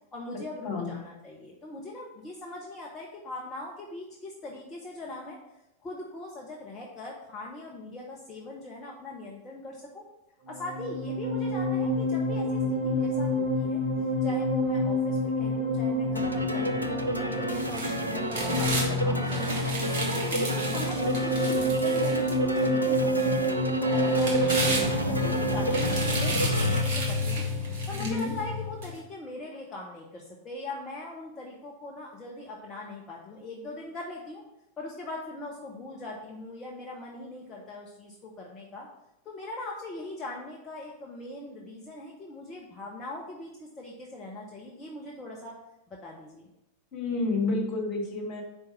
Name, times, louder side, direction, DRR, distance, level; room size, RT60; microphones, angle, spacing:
voice 1, 0.1-5.4 5.8-10.0 10.5-16.9 17.2-19.7 20.1-34.4 34.8-38.9 39.2-45.6 45.9-46.5, left 2 dB, 20° left, -3 dB, 1.0 m, -41 dB
voice 2, 0.6-1.0 27.9-28.3 46.9-48.4, left 3 dB, 40° left, 0 dB, 1.9 m, -30 dB
sound 1, 10.5-28.9, left 1 dB, 25° right, 1.9 m, -28 dB
sound 2, 16.2-26.8, right 1 dB, 90° left, 0.5 m, -32 dB
sound 3, 17.5-18.9 19.3-22.7 23.2-23.3 23.9-25.3 25.6-28.3 28.8-28.9, right 2 dB, 50° right, 2.0 m, -34 dB
5.1 x 4.5 x 6.1 m, 0.89 s
figure-of-eight pair, 90°, 0 cm